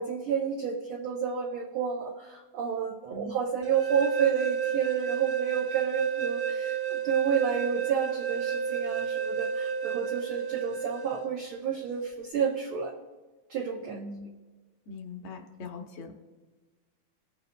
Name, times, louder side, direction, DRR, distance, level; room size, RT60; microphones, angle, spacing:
voice 1, 0.0-13.0 13.5-14.0, right 7 dB, 80° right, 0 dB, 1.2 m, -30 dB
sound 1, 3.6-11.2, right 8 dB, 50° right, 1.1 m, -31 dB
voice 2, 13.8-14.3 14.9-16.1, left 2 dB, 65° left, 4 dB, 1.8 m, -41 dB
18.5 x 6.7 x 2.2 m, 1.3 s
omnidirectional pair, 3.3 m